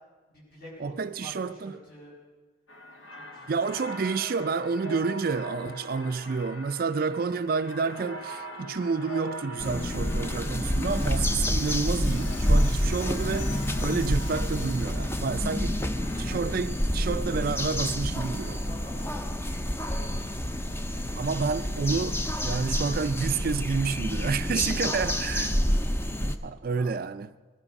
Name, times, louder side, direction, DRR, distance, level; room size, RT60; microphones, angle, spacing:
voice 1, 0.3-2.1 3.1-3.7 18.5-20.6 26.7-26.9, equal, 50° left, 6.6 m, -47 dB
voice 2, 0.8-1.8 3.5-15.8 16.2-18.6 21.1-25.6 26.2-27.3, right 4 dB, 50° right, 0.4 m, -29 dB
sound 1, 2.7-16.4, equal, 85° left, 1.9 m, -43 dB
sound 2, 9.6-26.4, equal, 10° left, 0.6 m, -28 dB
Sink (filling or washing), 10.1-15.2, left 4 dB, 65° left, 1.5 m, -47 dB
20.5 x 12.5 x 5.3 m
head